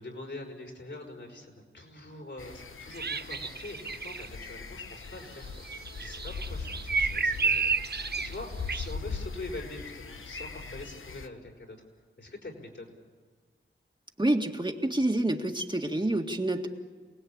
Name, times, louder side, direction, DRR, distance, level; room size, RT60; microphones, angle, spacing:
voice 1, 0.0-5.7 6.0-11.8 12.2-12.9, left 2 dB, 65° left, 1 dB, 5.6 m, -44 dB
sound 1, 2.4-11.3, left 4 dB, 85° left, 1.2 m, -41 dB
sound 2, 2.9-4.3 5.7-8.4 8.7-8.9, right 4 dB, 55° right, 0.7 m, -30 dB
voice 2, 14.2-16.7, right 1 dB, 25° right, 2 dB, 1.9 m, -28 dB
28.0 x 19.5 x 8.8 m, 1.5 s
wide cardioid pair, 85°, 20 cm